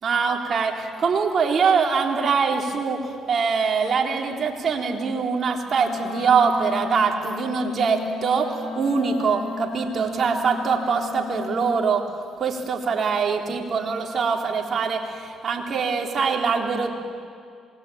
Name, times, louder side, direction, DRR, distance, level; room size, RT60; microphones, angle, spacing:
voice 1, 0.0-12.0 12.4-16.9, right 5 dB, 50° right, 1 dB, 4.0 m, -23 dB
Wind instrument woodwind instrument, 5.7-11.8, left 4 dB, 75° left, 6.4 m, -34 dB
27.0 x 20.5 x 8.9 m, 2.3 s
supercardioid pair, 65°, 0 cm